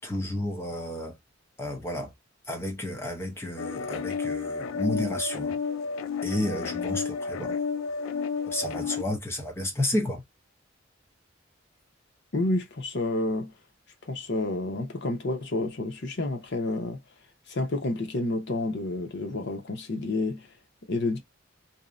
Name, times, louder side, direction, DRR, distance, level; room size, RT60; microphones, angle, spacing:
voice 1, 0.0-1.1 1.6-2.1 2.5-5.6 6.2-7.6 8.5-10.2, left 1 dB, 15° left, 0.6 m, -31 dB
sound 1, 3.6-9.0, left 5 dB, 80° left, 0.4 m, -31 dB
voice 2, 12.3-13.5 14.0-17.0 17.5-20.5 20.9-21.2, left 2 dB, 60° left, 0.8 m, -29 dB
2.7 x 2.0 x 2.4 m
head